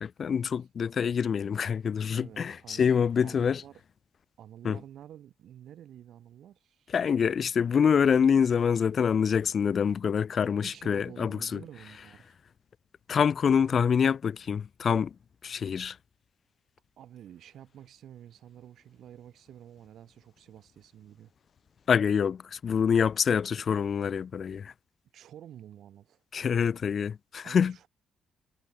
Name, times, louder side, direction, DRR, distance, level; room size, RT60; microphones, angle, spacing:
voice 1, 0.0-3.6 4.6-4.8 6.9-11.6 13.1-15.1 15.4-16.0 21.9-24.7 26.3-27.7, left 7 dB, 50° left, 1.1 m, -26 dB
voice 2, 2.1-2.9 3.2-3.8 4.4-7.0 10.6-12.4 17.0-21.3 25.1-26.2 27.4-27.9, right 11 dB, 70° right, 6.7 m, -49 dB
cardioid pair, 90°, 0 cm